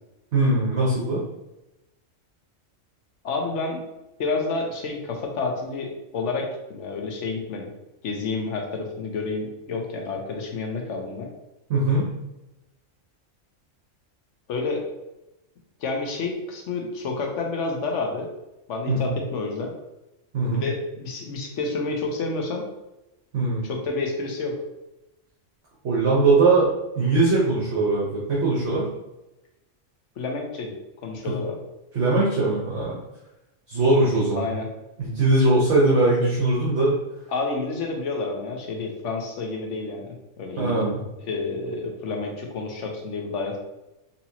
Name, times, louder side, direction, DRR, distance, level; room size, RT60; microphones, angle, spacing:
voice 1, 0.3-1.2 11.7-12.1 18.9-19.1 20.3-20.6 23.3-23.7 25.8-28.9 31.3-31.4 31.9-33.0 33.7-34.5 35.0-36.9 40.6-41.0, right 2 dB, 60° right, -6 dB, 1.2 m, -21 dB
voice 2, 3.2-3.8 4.2-7.7 8.0-11.3 14.5-14.8 15.8-18.3 18.7-19.7 20.5-22.6 23.6-24.6 30.2-30.7 31.0-31.6 34.4-34.7 37.3-40.8 41.2-43.6, left 3 dB, 70° left, 1 dB, 1.0 m, -29 dB
4.1 x 2.8 x 2.8 m, 0.94 s
omnidirectional pair, 1.3 m